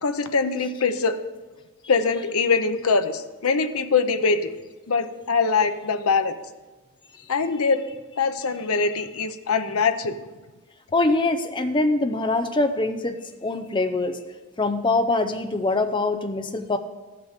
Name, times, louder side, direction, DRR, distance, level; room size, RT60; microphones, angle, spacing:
voice 1, 0.0-1.2 1.9-4.5 4.9-6.3 7.3-7.8 8.2-10.2, left 4 dB, 75° left, 8 dB, 0.8 m, -23 dB
voice 2, 10.9-14.2 14.6-16.8, left 2 dB, 20° left, 7 dB, 0.5 m, -23 dB
13.5 x 5.9 x 6.6 m, 1.2 s
head